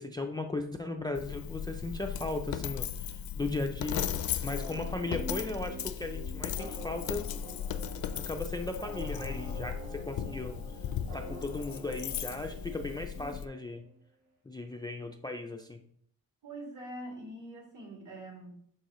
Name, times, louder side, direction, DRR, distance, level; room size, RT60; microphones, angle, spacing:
voice 1, 0.0-4.1 4.4-7.3 8.1-10.6 11.1-13.8 14.5-15.8, left 2 dB, 10° left, 4 dB, 0.3 m, -37 dB
Coin (dropping), 1.1-13.4, left 9 dB, 75° left, 0.5 m, -37 dB
sound 1, 4.5-13.9, right 1 dB, 80° right, 2.3 m, -46 dB
voice 2, 16.4-18.5, right 1 dB, 55° right, -3 dB, 2.8 m, -44 dB
11.5 x 4.6 x 3.0 m, 0.65 s
wide cardioid pair, 165°, 36 cm